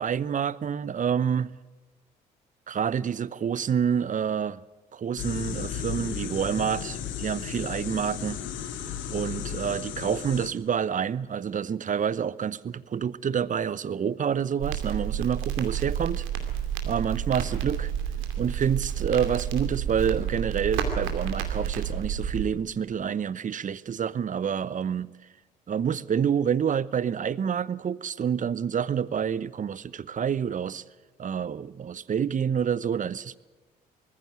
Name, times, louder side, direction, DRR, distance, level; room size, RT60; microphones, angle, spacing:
voice 1, 0.0-1.5 2.7-4.6 4.9-8.4 9.1-16.3 16.8-17.9 18.4-25.1 25.7-30.8 31.2-33.4, right 7 dB, 40° right, 0.8 m, -28 dB
sound 1, 5.2-10.5, left 8 dB, 65° left, 2.0 m, -34 dB
Crackle, 14.6-22.5, right 9 dB, 70° right, 2.5 m, -30 dB
21.0 x 14.5 x 8.9 m
hypercardioid pair, 45°, 21 cm